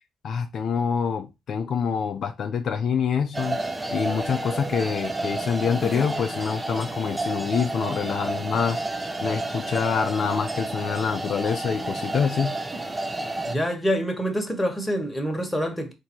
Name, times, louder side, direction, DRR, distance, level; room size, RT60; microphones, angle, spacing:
voice 1, 0.2-3.6 3.9-8.8 9.2-12.6, left 6 dB, 60° left, 0.5 m, -26 dB
sound 1, 3.3-13.5, right 2 dB, 15° right, 0.6 m, -30 dB
voice 2, 13.4-15.9, equal, 10° left, 1.3 m, -26 dB
3.8 x 2.7 x 4.3 m
cardioid pair, 90°, 0 cm